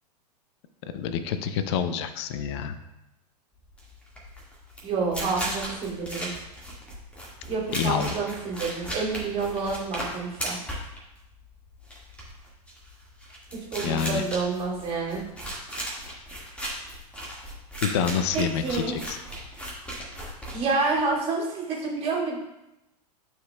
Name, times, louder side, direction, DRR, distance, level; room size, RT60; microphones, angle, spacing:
voice 1, 0.9-2.7 7.7-8.1 13.8-14.2 17.8-19.2, left 8 dB, 40° left, 11 dB, 0.5 m, -27 dB
sound 1, 3.7-21.1, right 1 dB, 5° left, 1.7 m, -36 dB
voice 2, 4.8-6.3 7.5-10.6 13.7-15.2 18.3-18.9 20.5-22.4, right 4 dB, 30° right, -5 dB, 2.5 m, -28 dB
12.5 x 4.7 x 2.2 m, 0.93 s
figure-of-eight pair, 95°, 21 cm